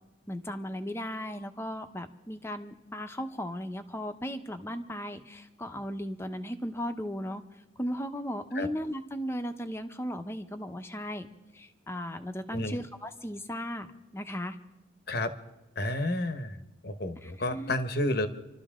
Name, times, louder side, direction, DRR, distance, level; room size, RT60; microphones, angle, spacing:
voice 1, 0.3-7.4 7.8-11.3 11.5-13.9 14.1-14.6 17.2-17.7, equal, 15° left, 8 dB, 0.9 m, -36 dB
voice 2, 15.8-18.3, left 1 dB, 50° left, 10 dB, 1.1 m, -31 dB
28.0 x 13.0 x 3.7 m, 1.1 s
head